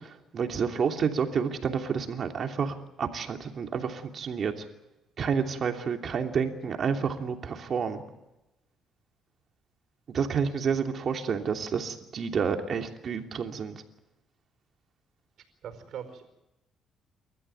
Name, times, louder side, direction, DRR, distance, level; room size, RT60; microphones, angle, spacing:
voice 1, 0.0-4.6 5.2-8.0 10.1-13.8, right 6 dB, 50° right, 4 dB, 2.9 m, -29 dB
voice 2, 15.6-16.3, right 8 dB, 65° right, 8 dB, 4.7 m, -43 dB
29.5 x 14.0 x 9.2 m, 0.94 s
cardioid pair, 100°, 0 cm